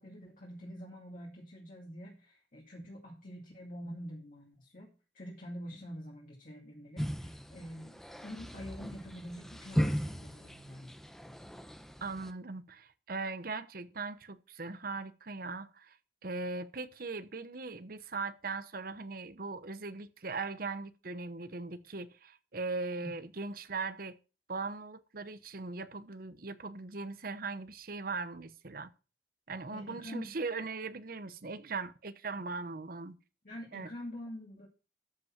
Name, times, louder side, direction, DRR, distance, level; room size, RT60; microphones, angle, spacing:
voice 1, 0.0-11.0 23.0-23.1 29.7-30.4 33.4-34.7, equal, 50° left, 2.4 m, -46 dB
sound 1, 7.0-12.3, equal, ahead, 0.7 m, -37 dB
voice 2, 12.0-16.0 16.2-24.2 24.5-28.9 29.5-33.2 33.7-33.9, right 3 dB, 55° right, 0.9 m, -39 dB
13.5 x 5.5 x 5.9 m
head